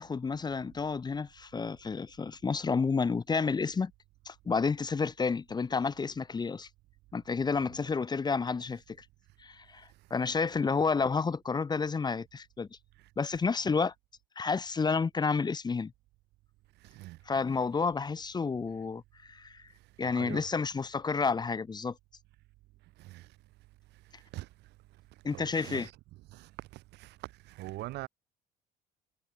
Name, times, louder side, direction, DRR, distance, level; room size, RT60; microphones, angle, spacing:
voice 1, 0.0-3.9 4.3-6.7 7.1-9.0 9.4-12.7 13.2-13.9 14.4-15.9 17.3-19.6 20.0-21.9 25.2-25.9, left 5 dB, 25° left, 1.1 m, -30 dB
voice 2, 16.8-17.2 20.0-20.5 23.0-23.4 24.1-24.5 25.3-25.9 26.3-28.1, right 18 dB, 85° right, 6.5 m, -43 dB
cardioid pair, 110°, 17 cm